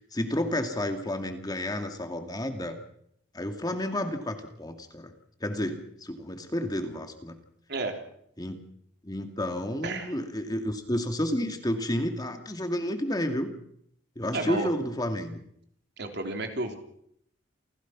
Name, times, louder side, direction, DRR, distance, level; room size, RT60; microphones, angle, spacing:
voice 1, 0.0-2.8 3.3-5.1 5.4-7.3 8.4-8.6 9.0-13.5 14.2-15.4, left 1 dB, 20° left, 6 dB, 2.2 m, -31 dB
voice 2, 9.8-10.1 14.3-14.7 16.0-16.7, right 2 dB, 60° right, 4 dB, 3.5 m, -32 dB
29.0 x 16.5 x 6.1 m, 0.70 s
head